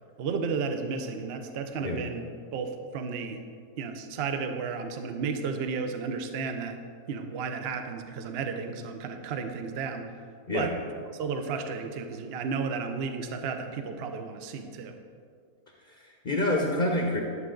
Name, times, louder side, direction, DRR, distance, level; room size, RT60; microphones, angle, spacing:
voice 1, 0.2-2.2 2.5-3.4 3.8-6.8 7.1-10.1 10.5-10.7 11.1-15.0, right 5 dB, 55° right, 6 dB, 0.7 m, -33 dB
voice 2, 15.8-17.2, left 1 dB, 40° left, 0 dB, 0.8 m, -28 dB
11.5 x 7.5 x 3.8 m, 2.2 s
omnidirectional pair, 1.7 m